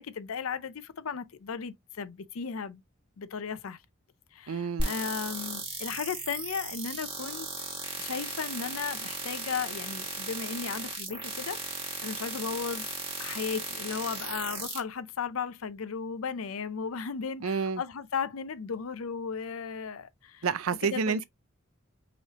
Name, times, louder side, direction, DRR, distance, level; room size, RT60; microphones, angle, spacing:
voice 1, 0.0-2.8 3.2-3.8 4.3-7.5 8.0-12.9 13.2-20.5 20.8-21.2, left 6 dB, 80° left, 0.5 m, -35 dB
voice 2, 4.5-4.9 17.4-17.8 20.4-21.2, right 5 dB, 85° right, 0.5 m, -29 dB
sound 1, 4.8-14.8, right 3 dB, 25° right, 2.1 m, -36 dB
5.5 x 3.1 x 2.9 m
head